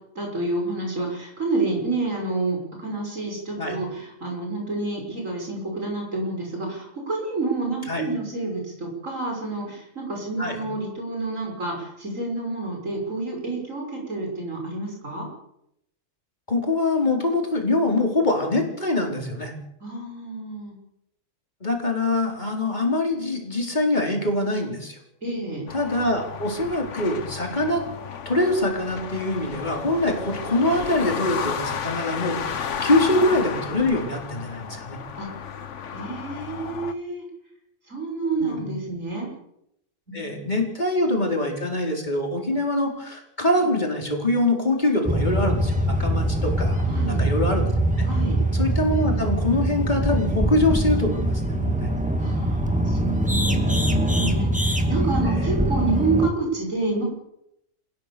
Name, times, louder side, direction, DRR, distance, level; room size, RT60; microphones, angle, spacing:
voice 1, 0.1-15.3 19.8-20.7 25.2-25.6 35.2-35.3 35.9-37.2 37.9-39.3 40.1-40.7 46.8-47.2 48.1-48.4 52.2-57.0, right 3 dB, 90° right, 0 dB, 6.6 m, -29 dB
voice 2, 16.5-19.5 21.6-25.0 25.7-27.8 28.2-35.0 38.4-38.8 40.1-47.7 48.0-48.1 48.5-51.9 55.2-55.5, left 2 dB, 35° left, 1 dB, 4.6 m, -24 dB
sound 1, 25.7-36.9, left 7 dB, 70° left, 1.4 m, -33 dB
sound 2, 45.0-56.3, right 1 dB, 5° right, 2.3 m, -23 dB
29.0 x 16.0 x 7.0 m, 0.80 s
omnidirectional pair, 1.3 m